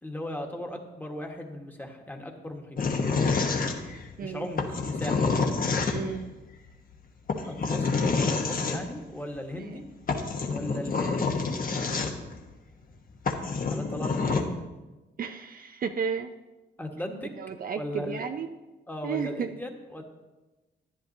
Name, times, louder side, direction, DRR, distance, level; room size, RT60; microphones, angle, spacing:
voice 1, 0.0-2.8 4.2-5.3 7.4-9.8 10.5-11.5 13.7-14.6 16.8-17.3 17.7-18.2 18.9-20.0, left 1 dB, 10° left, 2 dB, 1.3 m, -37 dB
sound 1, 2.8-4.1 4.6-6.2 7.3-8.8 9.7-9.8 10.1-12.4 12.9-13.0 13.3-14.4, left 4 dB, 45° left, 1.1 m, -27 dB
voice 2, 4.2-4.5 5.9-6.3 9.6-9.8 15.2-16.3 17.4-18.5 19.0-19.5, right 6 dB, 50° right, 7 dB, 0.5 m, -33 dB
11.0 x 9.9 x 2.7 m, 1.1 s
cardioid pair, 80°, 19 cm